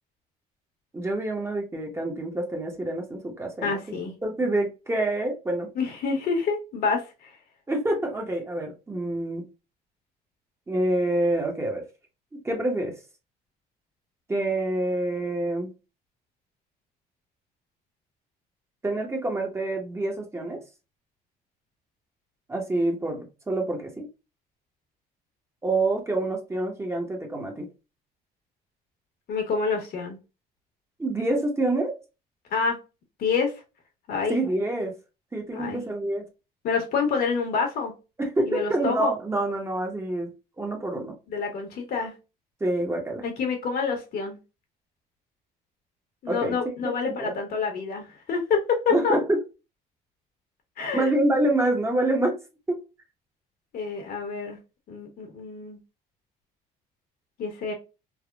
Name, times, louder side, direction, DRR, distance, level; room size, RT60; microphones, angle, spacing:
voice 1, 0.9-3.8 4.2-5.7 7.7-9.5 10.7-11.8 12.3-13.0 14.3-15.7 18.8-20.6 22.5-24.1 25.6-27.7 31.0-31.9 34.3-34.9 35.3-36.2 38.2-41.1 42.6-43.2 46.3-46.6 47.0-47.3 48.9-49.4 50.9-52.4 52.7-52.8, right 2 dB, 15° right, 0.8 m, -27 dB
voice 2, 3.6-4.1 5.8-7.3 29.3-30.2 32.5-32.8 33.2-33.6 34.1-34.4 35.5-35.8 36.6-37.9 38.4-39.1 41.3-42.1 43.2-44.4 46.2-49.2 50.8-51.1 53.7-54.6 54.9-55.8 57.4-57.7, left 5 dB, 65° left, 1.1 m, -27 dB
3.4 x 2.2 x 2.2 m
cardioid pair, 110°, 17 cm